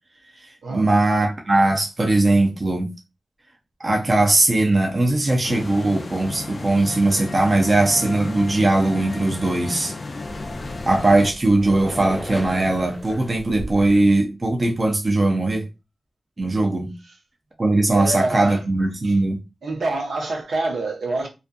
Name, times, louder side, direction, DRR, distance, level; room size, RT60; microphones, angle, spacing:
voice 1, 0.7-2.9 3.8-9.9 10.9-15.6 16.4-16.9 17.6-19.4, right 2 dB, 30° right, 0.5 m, -19 dB
sound 1, 5.4-11.3, left 3 dB, 40° left, 0.3 m, -33 dB
sound 2, 10.2-14.0, equal, 15° left, 0.7 m, -35 dB
voice 2, 17.9-18.6 19.0-19.2 19.6-21.3, right 2 dB, 80° right, 0.7 m, -26 dB
2.6 x 2.4 x 2.3 m
wide cardioid pair, 140°, 0 cm